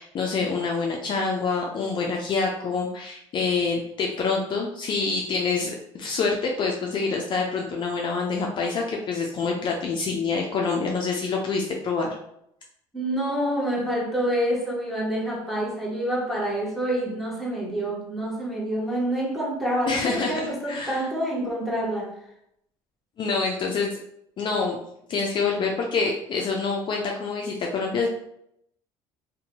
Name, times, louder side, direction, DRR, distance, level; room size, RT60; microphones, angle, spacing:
voice 1, 0.0-5.7 6.0-12.1 19.9-21.1 23.2-24.0 24.4-24.8 25.1-28.1, left 4 dB, 40° left, 0 dB, 0.4 m, -26 dB
voice 2, 12.9-22.1, right 1 dB, ahead, -5 dB, 0.9 m, -27 dB
2.7 x 2.2 x 2.7 m, 0.75 s
supercardioid pair, 100°, 13 cm